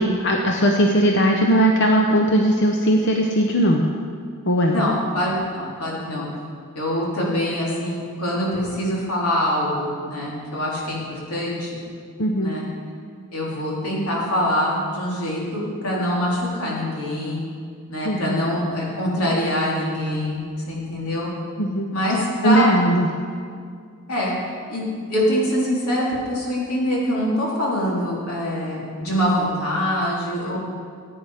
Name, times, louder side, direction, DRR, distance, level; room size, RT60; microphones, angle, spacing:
voice 1, 0.0-3.9 4.4-4.8 12.2-12.5 18.0-18.4 21.6-21.9 22.2-23.1, equal, 55° left, 1 dB, 0.8 m, -19 dB
voice 2, 4.7-6.3 6.8-11.7 12.4-12.6 13.3-17.4 17.9-21.3 21.9-22.7 24.1-24.3 24.7-24.8 25.1-30.6, equal, 85° left, -5 dB, 3.5 m, -24 dB
16.0 x 8.9 x 4.9 m, 2.2 s
head